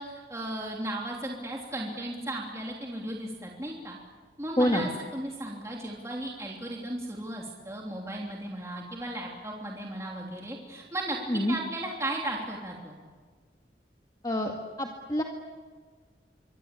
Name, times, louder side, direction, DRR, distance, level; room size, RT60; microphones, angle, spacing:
voice 1, 0.0-4.0 4.4-12.9, right 1 dB, 15° right, -2 dB, 3.2 m, -36 dB
voice 2, 4.6-4.9 11.3-11.5 14.2-14.5 14.8-15.2, left 1 dB, 20° left, 1 dB, 2.0 m, -26 dB
27.0 x 24.0 x 8.5 m, 1.5 s
head